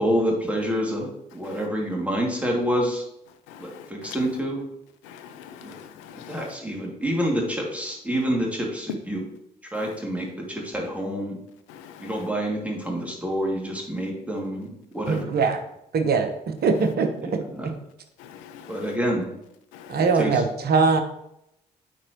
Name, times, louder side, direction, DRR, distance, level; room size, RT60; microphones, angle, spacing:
voice 1, 0.0-3.0 3.6-4.6 5.6-5.7 6.3-9.2 9.7-11.4 12.0-15.3 17.2-17.7 18.7-19.3 20.0-20.4, equal, 5° right, 2.5 m, -27 dB
voice 2, 3.5-4.2 5.0-6.5 9.7-10.0 11.7-12.3 15.1-15.2 18.2-18.9 19.7-20.1, left 9 dB, 65° left, 0.6 m, -44 dB
voice 3, 15.1-15.6 15.9-17.1 19.9-21.0, right 4 dB, 50° right, 1.1 m, -21 dB
9.1 x 4.4 x 3.1 m
figure-of-eight pair, 45°, 21 cm